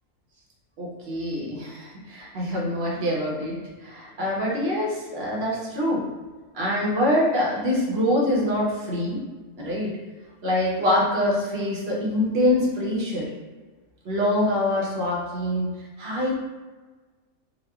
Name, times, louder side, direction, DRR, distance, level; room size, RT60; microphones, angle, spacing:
voice 1, 0.8-6.0 6.5-9.2 9.6-9.9 10.4-13.3 14.0-15.7 16.0-16.4, left 1 dB, 60° right, -4 dB, 0.7 m, -25 dB
2.9 x 2.1 x 2.2 m, 1.3 s
omnidirectional pair, 1.4 m